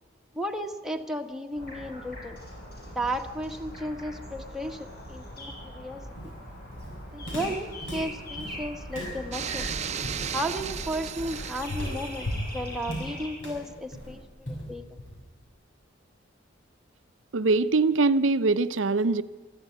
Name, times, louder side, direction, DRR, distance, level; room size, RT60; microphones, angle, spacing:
voice 1, 0.3-2.4 2.9-6.0 7.1-9.7 10.3-12.3 12.5-14.8, equal, ahead, 2 dB, 1.4 m, -34 dB
sound 1, 1.5-13.3, equal, 55° left, 7.5 m, -41 dB
Walk footsteps, 6.2-15.4, equal, 90° left, 6.7 m, -37 dB
sound 2, 9.3-12.5, right 7 dB, 35° right, 0.7 m, -35 dB
voice 2, 17.3-19.2, right 3 dB, 85° right, 11 dB, 0.6 m, -22 dB
24.5 x 13.5 x 9.3 m, 1.3 s
head